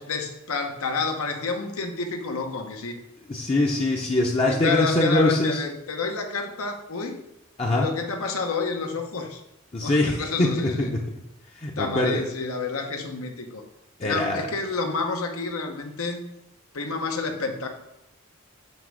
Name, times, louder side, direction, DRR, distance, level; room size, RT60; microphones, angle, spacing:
voice 1, 0.1-2.9 4.5-7.2 7.7-9.4 9.8-10.9 11.8-13.6 14.0-16.2 16.7-17.7, left 4 dB, 80° left, 4 dB, 1.0 m, -29 dB
voice 2, 3.3-5.6 7.6-7.9 9.7-10.9 11.6-12.2 14.0-14.5, left 1 dB, 25° left, -1 dB, 0.6 m, -23 dB
7.2 x 3.4 x 6.2 m, 0.86 s
head